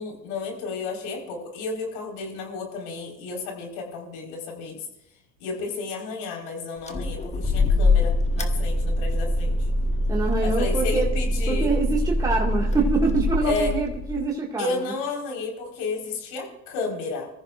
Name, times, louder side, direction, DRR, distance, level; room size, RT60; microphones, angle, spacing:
voice 1, 0.0-4.8 5.4-9.6 10.4-11.8 13.4-13.7 14.6-17.3, left 4 dB, 70° left, 1 dB, 4.6 m, -32 dB
sound 1, 6.9-14.2, left 1 dB, 15° left, 1.2 m, -24 dB
voice 2, 10.1-11.1 11.5-14.9, right 3 dB, 10° right, -3 dB, 2.0 m, -25 dB
22.0 x 14.0 x 2.5 m, 0.82 s
supercardioid pair, 95°, 38 cm